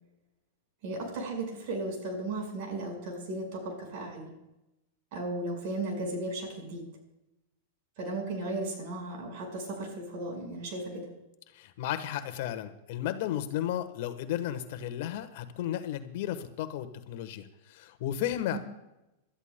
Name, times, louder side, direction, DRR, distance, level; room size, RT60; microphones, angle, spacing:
voice 1, 0.8-4.3 5.1-6.9 8.0-11.1 18.5-18.6, right 2 dB, 55° right, 2 dB, 4.9 m, -35 dB
voice 2, 11.5-18.6, left 11 dB, 60° left, 10 dB, 1.1 m, -34 dB
27.0 x 13.0 x 2.2 m, 0.93 s
supercardioid pair, 135°, 0 cm